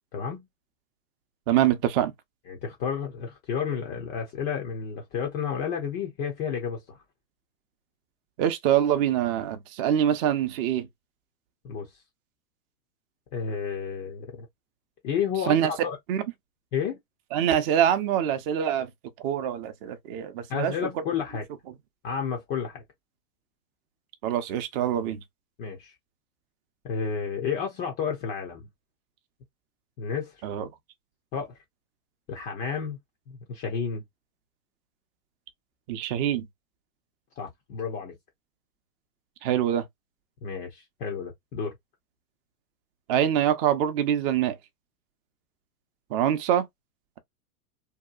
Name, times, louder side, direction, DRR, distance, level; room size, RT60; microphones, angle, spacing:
voice 1, 0.1-0.4 2.5-7.0 11.6-11.9 13.3-14.5 15.0-16.0 16.7-17.0 20.5-21.4 22.0-22.8 25.6-25.9 26.8-28.7 30.0-30.4 31.3-31.6 32.3-33.0 33.3-34.0 37.4-38.2 40.4-41.7, left 6 dB, 20° left, 0.4 m, -31 dB
voice 2, 1.5-2.1 8.4-10.9 15.5-15.7 16.1-16.2 17.3-18.9 19.2-21.0 24.2-25.2 30.4-30.7 35.9-36.5 39.4-39.9 43.1-44.6 46.1-46.7, right 10 dB, 40° right, 0.6 m, -24 dB
2.8 x 2.3 x 2.2 m
hypercardioid pair, 120°, 45 cm